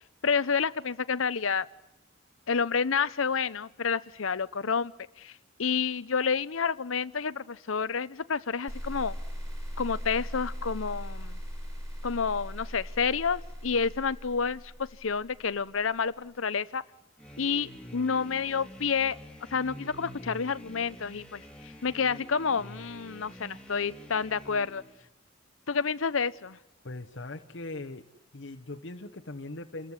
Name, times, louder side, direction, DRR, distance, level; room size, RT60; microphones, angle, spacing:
voice 1, 0.2-1.7 2.5-4.9 5.2-5.3 5.6-9.2 9.8-11.4 12.0-16.8 17.4-19.2 19.5-21.4 21.8-24.8 25.7-26.6, left 5 dB, 85° left, 16 dB, 0.8 m, -29 dB
sound 1, 8.7-15.8, equal, 15° right, 5.3 m, -39 dB
sound 2, 17.2-25.0, equal, 5° left, 2.3 m, -47 dB
voice 2, 26.8-28.1 28.3-29.9, left 2 dB, 65° left, 5 dB, 1.0 m, -40 dB
28.0 x 14.5 x 9.7 m, 0.94 s
head